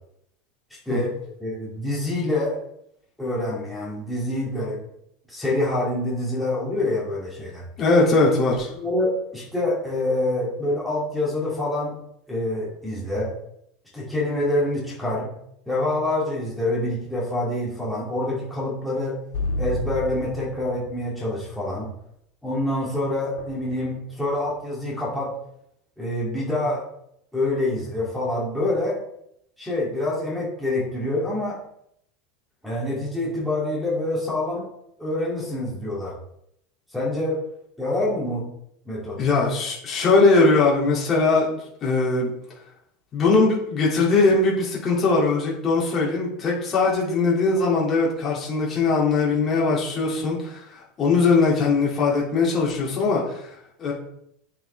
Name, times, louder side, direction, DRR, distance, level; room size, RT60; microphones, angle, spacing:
voice 1, 1.4-2.6 3.2-4.8 5.3-7.6 8.7-11.9 12.3-13.3 13.9-15.3 15.7-19.2 19.6-21.9 22.4-25.3 26.0-26.8 27.3-29.0 29.6-31.6 32.6-34.7 35.0-36.1 36.9-37.4 37.8-38.5 38.9-39.2, left 1 dB, ahead, -7 dB, 2.7 m, -26 dB
voice 2, 7.8-8.7 39.2-42.3 43.1-53.9, left 3 dB, 25° left, -4 dB, 2.5 m, -21 dB
sound 1, 19.3-21.1 23.4-24.3, left 2 dB, 85° left, 1.8 m, -31 dB
8.6 x 7.3 x 3.4 m, 0.75 s
supercardioid pair, 170°, 0 cm